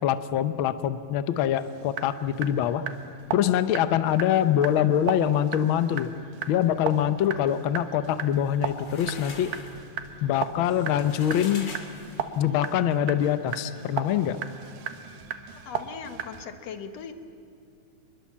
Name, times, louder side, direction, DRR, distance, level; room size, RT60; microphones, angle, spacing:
voice 1, 0.0-2.8 3.3-6.1 6.5-9.5 10.2-11.7 12.3-14.4, left 10 dB, 85° left, 12 dB, 1.1 m, -24 dB
sound 1, 1.6-16.5, right 9 dB, 90° right, 2.7 m, -37 dB
sound 2, 8.3-12.5, left 3 dB, 40° left, 2.7 m, -43 dB
voice 2, 15.6-17.2, left 6 dB, 65° left, 8 dB, 2.3 m, -39 dB
26.0 x 21.5 x 7.3 m, 2.5 s
omnidirectional pair, 3.4 m